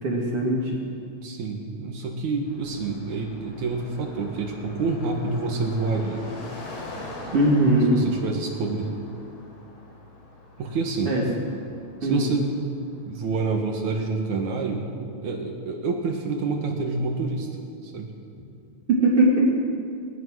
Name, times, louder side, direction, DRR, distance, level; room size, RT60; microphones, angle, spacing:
voice 1, 0.0-0.7 7.3-8.0 11.0-11.2 12.0-12.2 19.0-19.5, right 1 dB, 50° right, -3 dB, 3.3 m, -20 dB
voice 2, 1.2-6.2 7.9-8.9 10.6-11.2 12.0-12.6 13.1-14.9 15.2-17.5 17.8-18.1, right 3 dB, 75° right, 2 dB, 3.1 m, -28 dB
Car passing by, 2.5-13.6, left 2 dB, 90° left, 5.1 m, -43 dB
21.0 x 19.0 x 6.4 m, 2.4 s
omnidirectional pair, 3.4 m